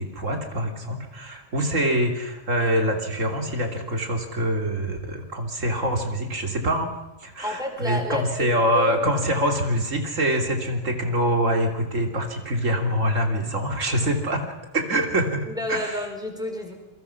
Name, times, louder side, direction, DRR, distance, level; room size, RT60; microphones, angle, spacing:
voice 1, 0.0-6.9 7.2-16.0, equal, 85° right, 4 dB, 3.3 m, -25 dB
voice 2, 7.4-8.5 8.7-9.0 15.5-16.7, left 1 dB, 5° right, 3 dB, 4.3 m, -30 dB
27.5 x 23.5 x 5.8 m, 1.0 s
omnidirectional pair, 1.3 m